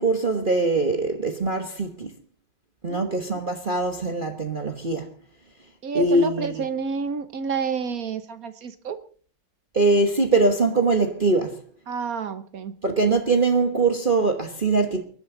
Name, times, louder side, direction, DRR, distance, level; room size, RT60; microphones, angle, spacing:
voice 1, 0.0-2.1 2.8-5.1 5.9-6.6 9.7-11.6 12.8-15.0, right 3 dB, 30° right, 1.2 m, -22 dB
voice 2, 2.9-3.2 5.8-9.0 11.9-12.7, right 5 dB, 50° right, 1.3 m, -29 dB
22.0 x 11.5 x 3.9 m
omnidirectional pair, 2.3 m